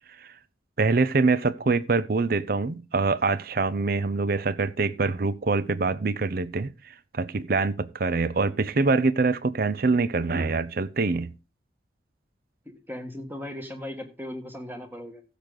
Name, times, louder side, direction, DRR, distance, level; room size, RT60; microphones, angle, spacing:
voice 1, 0.8-6.7 7.1-11.3, right 3 dB, 50° right, 0.6 m, -24 dB
voice 2, 12.6-15.2, left 1 dB, 10° right, 1.5 m, -37 dB
15.0 x 6.7 x 3.8 m
head